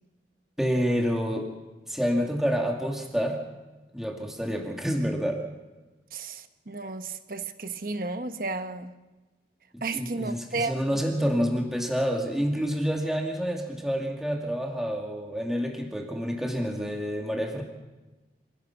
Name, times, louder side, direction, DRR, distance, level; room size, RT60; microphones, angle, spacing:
voice 1, 0.6-1.5 1.9-3.4 3.9-5.4 9.7-17.6, equal, ahead, 1 dB, 2.4 m, -28 dB
voice 2, 6.1-8.9 9.8-10.9, right 3 dB, 55° right, 9 dB, 1.2 m, -33 dB
26.5 x 17.5 x 5.9 m, 1.1 s
head